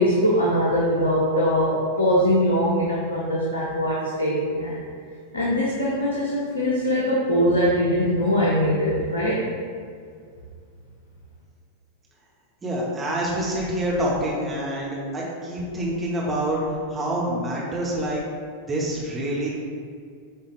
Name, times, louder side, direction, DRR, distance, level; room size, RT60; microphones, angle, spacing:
voice 1, 0.0-4.8 5.3-9.4, equal, 75° left, -6 dB, 1.0 m, -22 dB
voice 2, 12.6-16.6 16.9-18.2 18.7-19.5, right 1 dB, 20° right, -5 dB, 1.5 m, -26 dB
8.0 x 3.9 x 3.3 m, 2.2 s
figure-of-eight pair, 90°, 0 cm